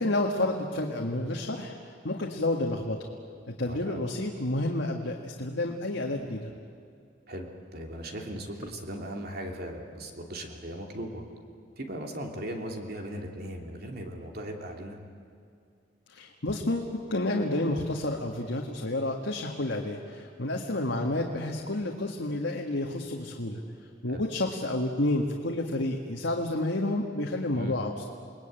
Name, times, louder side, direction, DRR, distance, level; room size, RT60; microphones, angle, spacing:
voice 1, 0.0-1.7 2.0-3.1 3.5-6.5 16.1-23.6 24.0-28.1, left 1 dB, 80° left, 1 dB, 1.7 m, -30 dB
voice 2, 3.7-4.0 7.3-11.2 11.8-15.0 24.1-24.3 27.5-27.8, right 1 dB, 55° right, 2 dB, 3.0 m, -38 dB
29.5 x 20.5 x 9.1 m, 2.3 s
head